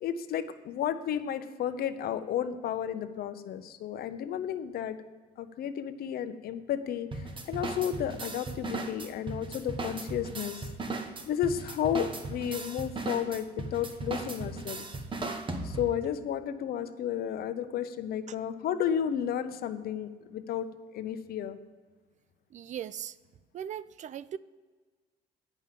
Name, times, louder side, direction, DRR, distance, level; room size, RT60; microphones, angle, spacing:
voice 1, 0.0-5.0 5.4-10.7 11.3-14.9 15.6-20.7 20.9-21.6, left 9 dB, 65° left, 10 dB, 0.8 m, -32 dB
sound 1, 7.1-16.0, right 3 dB, 30° right, 1.1 m, -37 dB
voice 2, 22.5-23.2 23.5-24.4, right 9 dB, 45° right, 17 dB, 0.4 m, -38 dB
10.0 x 5.5 x 7.4 m, 1.4 s
cardioid pair, 110°, 17 cm